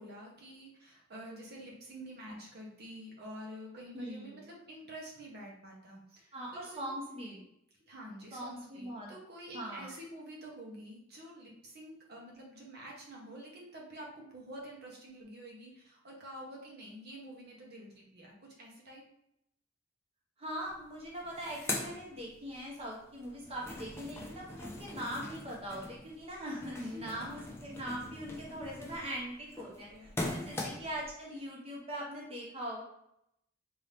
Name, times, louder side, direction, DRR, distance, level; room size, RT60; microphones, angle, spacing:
voice 1, 0.0-6.9 7.9-19.0 26.8-27.5 29.6-30.5, right 1 dB, 55° right, -2 dB, 1.0 m, -48 dB
voice 2, 3.9-4.5 6.3-7.4 8.3-9.1 9.5-9.9 20.4-29.9 30.3-32.8, equal, 30° right, -3 dB, 0.8 m, -41 dB
sound 1, 20.7-20.8 21.0-22.8 23.2-31.1, left 2 dB, 15° left, 0.6 m, -42 dB
3.9 x 2.7 x 3.3 m, 0.78 s
head